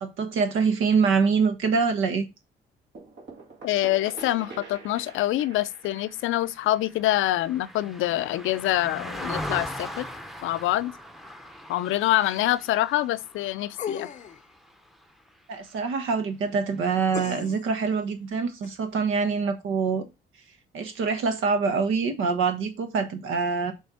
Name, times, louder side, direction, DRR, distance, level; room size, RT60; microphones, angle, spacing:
voice 1, 0.0-2.3 15.5-20.1 20.7-23.7, right 5 dB, 85° right, 1.3 m, -25 dB
sound 1, 2.9-8.5, right 4 dB, 65° right, 2.2 m, -46 dB
voice 2, 3.6-10.1 10.4-10.9 11.7-14.1, left 15 dB, 85° left, 0.5 m, -25 dB
Car passing by, 5.7-15.3 15.7-15.9, equal, ahead, 0.7 m, -40 dB
sound 2, 13.8-14.5 17.1-17.7 18.6-18.7, left 8 dB, 40° left, 0.5 m, -35 dB
6.4 x 3.4 x 5.6 m
cardioid pair, 90°, 20 cm